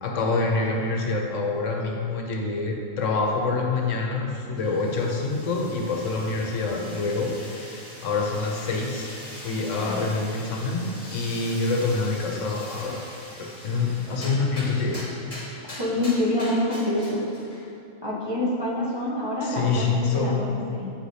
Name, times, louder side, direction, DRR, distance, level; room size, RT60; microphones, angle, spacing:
voice 1, 0.0-9.1 9.4-13.0 13.4-15.0 15.6-15.8 19.4-20.6, left 3 dB, 70° left, 1 dB, 1.0 m, -26 dB
sound 1, 4.6-17.7, left 1 dB, 30° left, 1.0 m, -42 dB
voice 2, 15.6-17.3 18.0-20.9, left 1 dB, 25° right, -8 dB, 0.7 m, -27 dB
8.7 x 4.8 x 2.7 m, 2.6 s
omnidirectional pair, 1.4 m